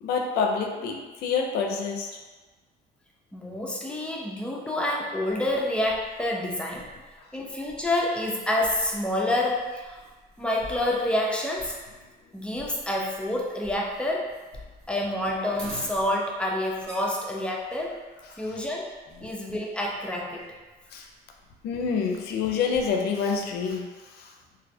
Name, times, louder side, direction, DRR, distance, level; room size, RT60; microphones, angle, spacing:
voice 1, 0.0-2.2 7.2-7.3 18.3-18.6 19.2-19.3 20.9-21.1 21.6-24.3, left 5 dB, 70° left, 2 dB, 0.4 m, -28 dB
voice 2, 3.3-6.9 7.3-10.0 10.4-11.8 12.3-14.3 14.9-18.0 18.4-18.9 19.2-20.5, left 1 dB, 5° left, -2 dB, 0.4 m, -28 dB
sound 1, 5.3-23.7, equal, 70° right, 1.1 m, -50 dB
2.5 x 2.0 x 2.7 m, 1.3 s
cardioid pair, 110°, 17 cm